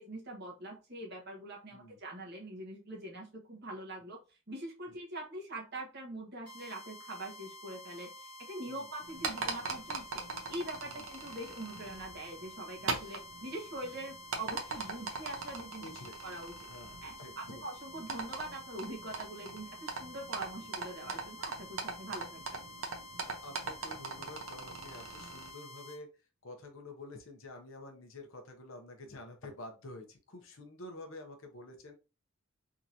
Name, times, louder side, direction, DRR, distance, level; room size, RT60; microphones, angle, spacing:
voice 1, 0.0-4.2 4.5-8.1 8.4-10.2 10.5-15.8 16.2-16.7 17.0-22.6, right 1 dB, 50° right, -1 dB, 1.2 m, -43 dB
sound 1, 6.5-26.0, left 1 dB, 5° left, 1.3 m, -50 dB
sound 2, 9.0-25.5, right 4 dB, 65° right, 0.8 m, -41 dB
voice 2, 15.8-16.2 16.7-17.6 23.2-26.1 26.4-31.9, left 2 dB, 70° left, 3 dB, 0.9 m, -49 dB
3.6 x 3.0 x 2.6 m, 0.31 s
head